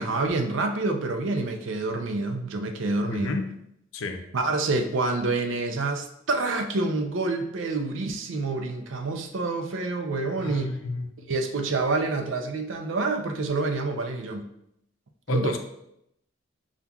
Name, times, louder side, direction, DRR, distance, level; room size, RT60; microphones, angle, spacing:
voice 1, 0.0-3.4 4.3-10.8 11.3-14.5 15.3-15.6, right 3 dB, 70° right, 5 dB, 0.5 m, -27 dB
voice 2, 3.1-3.5 3.9-4.3 10.4-11.1 15.3-15.6, left 2 dB, 80° left, 6 dB, 0.5 m, -31 dB
6.9 x 2.4 x 2.3 m, 0.79 s
head